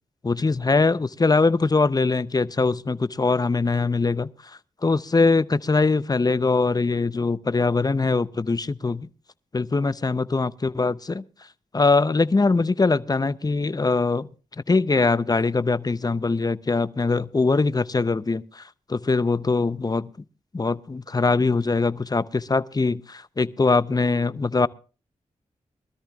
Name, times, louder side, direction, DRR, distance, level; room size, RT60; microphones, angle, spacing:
voice 1, 0.2-4.3 4.8-9.1 9.5-11.2 11.7-14.3 14.7-18.6 18.9-20.1 20.5-24.7, left 3 dB, 30° left, 0.7 m, -22 dB
23.0 x 13.5 x 2.4 m
cardioid pair, 45°, 13 cm